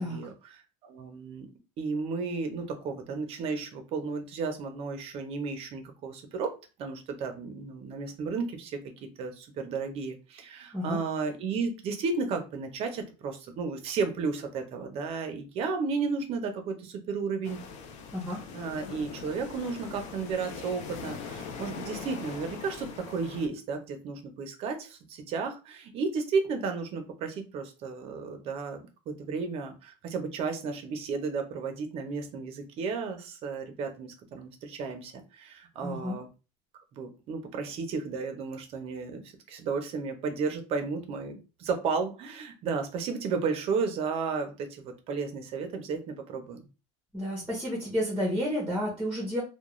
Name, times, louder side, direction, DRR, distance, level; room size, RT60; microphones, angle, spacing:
voice 1, 0.0-1.5 1.8-17.6 18.5-36.3 36.9-39.2 39.5-46.7, right 4 dB, 35° right, 6 dB, 0.6 m, -33 dB
sound 1, 17.4-23.5, left 5 dB, 45° left, 0.4 m, -41 dB
voice 2, 35.8-36.2 47.1-49.4, equal, 5° right, -3 dB, 0.8 m, -31 dB
2.3 x 2.2 x 3.0 m, 0.31 s
cardioid pair, 160°, 16 cm